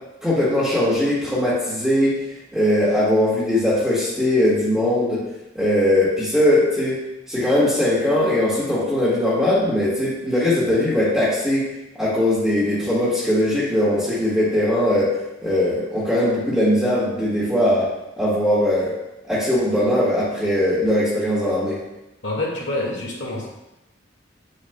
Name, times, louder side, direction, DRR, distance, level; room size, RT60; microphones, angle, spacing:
voice 1, 0.2-2.2 2.5-5.2 5.5-11.6 11.9-15.2 15.4-17.9 18.2-18.9 19.3-21.8, left 1 dB, ahead, -12 dB, 1.7 m, -20 dB
voice 2, 22.2-23.5, left 2 dB, 65° left, -3 dB, 2.1 m, -26 dB
8.5 x 6.5 x 2.3 m, 0.95 s
head